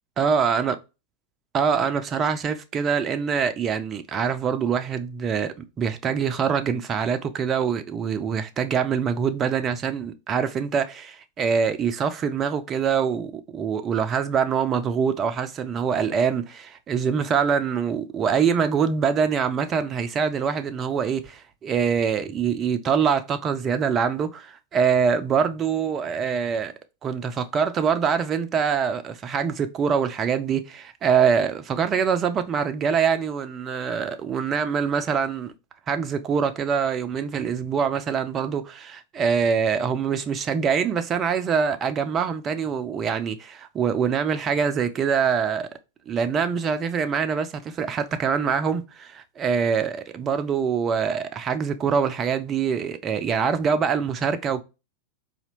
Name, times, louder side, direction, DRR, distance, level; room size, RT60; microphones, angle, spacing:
voice 1, 0.2-0.8 1.5-26.7 27.0-35.5 35.9-45.7 46.1-54.6, right 6 dB, 25° right, 0.5 m, -24 dB
4.2 x 2.8 x 2.5 m
figure-of-eight pair, 90°, 0 cm